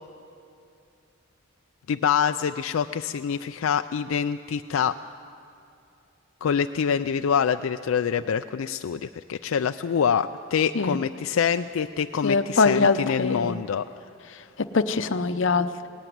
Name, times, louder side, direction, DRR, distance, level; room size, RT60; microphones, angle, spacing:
voice 1, 1.9-5.0 6.4-13.8, left 7 dB, 85° left, 8 dB, 0.4 m, -25 dB
voice 2, 12.2-13.6 14.3-15.9, left 4 dB, 65° left, 11 dB, 0.7 m, -23 dB
19.0 x 15.0 x 9.4 m, 2.6 s
head